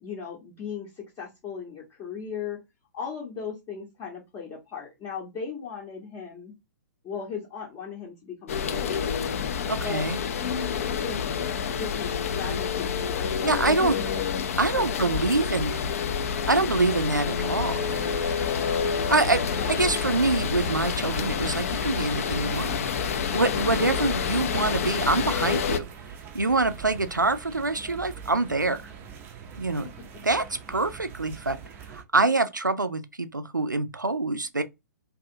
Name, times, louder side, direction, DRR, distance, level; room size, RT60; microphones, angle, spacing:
voice 1, 0.0-2.6 2.9-6.5 7.0-9.2 9.8-10.1 10.4-11.2 11.6-14.2 14.7-15.4 19.5-19.8 23.6-23.9, left 6 dB, 20° left, 0.7 m, -37 dB
sound 1, 8.5-25.8, left 7 dB, 50° left, 0.4 m, -28 dB
voice 2, 9.7-10.2 13.4-14.0 14.6-16.0 16.5-18.1 19.1-22.8 23.3-25.9 26.3-28.9 29.6-29.9 30.2-31.6 31.9-34.6, right 3 dB, 85° right, 0.4 m, -25 dB
sound 2, 17.7-32.0, right 7 dB, 20° right, 0.4 m, -42 dB
2.6 x 2.4 x 2.6 m
figure-of-eight pair, 115°, 10 cm